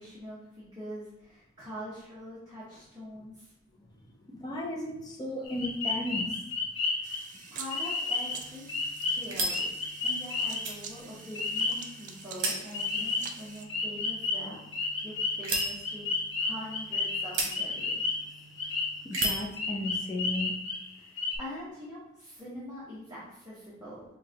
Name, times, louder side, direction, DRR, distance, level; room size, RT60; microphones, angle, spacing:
voice 1, 0.0-3.5 6.8-7.2 7.5-9.7 10.0-14.6 15.0-16.1 16.4-18.0 21.0-24.0, equal, 20° right, -10 dB, 1.2 m, -44 dB
voice 2, 4.3-6.3 19.0-20.5, left 1 dB, 20° left, -2 dB, 0.7 m, -34 dB
sound 1, 5.4-7.2 7.7-8.4 8.7-10.7 11.3-11.9 12.7-13.4 13.7-18.3 18.6-20.9 21.2-21.4, left 3 dB, 75° left, 1.0 m, -32 dB
sound 2, 7.0-13.7, right 6 dB, 40° right, 0.4 m, -47 dB
sound 3, 8.2-19.5, right 2 dB, 70° right, 1.1 m, -39 dB
5.6 x 2.5 x 2.9 m, 0.82 s
head